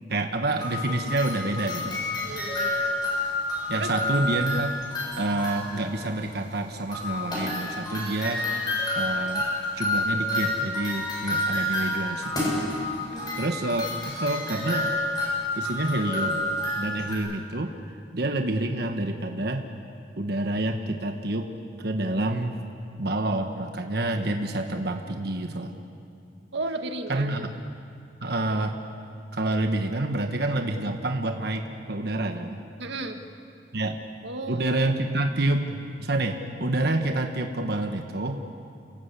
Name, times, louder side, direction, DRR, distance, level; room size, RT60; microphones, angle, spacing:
voice 1, 0.1-2.0 3.7-4.8 5.2-8.4 8.9-9.5 9.8-12.5 13.4-14.9 15.6-16.4 16.8-17.7 18.1-19.7 20.2-21.5 21.8-22.6 23.0-25.7 27.1-27.6 28.2-28.8 29.3-32.6 33.7-34.0 34.5-38.4, right 2 dB, 65° right, 4 dB, 1.3 m, -28 dB
sound 1, 0.5-5.9 6.9-17.1, left 1 dB, 25° left, 7.9 m, -29 dB
voice 2, 2.2-2.8 3.7-3.9 13.1-13.5 26.5-27.6 32.8-33.2 34.2-34.8, right 2 dB, 90° right, 5 dB, 1.8 m, -34 dB
29.0 x 17.5 x 8.3 m, 2.4 s
head